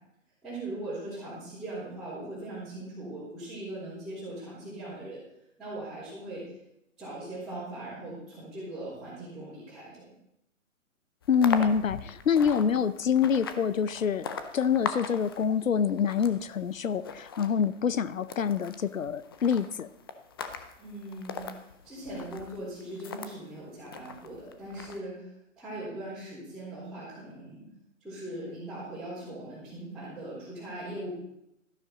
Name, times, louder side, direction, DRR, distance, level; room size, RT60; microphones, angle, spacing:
voice 1, 0.4-5.2 5.6-6.5 7.0-10.1 20.8-21.4 21.8-27.6 28.0-31.1, right 1 dB, ahead, -13 dB, 4.0 m, -40 dB
sound 1, 11.2-23.4 23.9-25.0, left 6 dB, 20° left, 0.4 m, -40 dB
voice 2, 11.3-14.3 14.5-19.9, left 7 dB, 85° left, 16 dB, 0.7 m, -26 dB
12.5 x 11.5 x 4.0 m, 0.80 s
figure-of-eight pair, 135°, 38 cm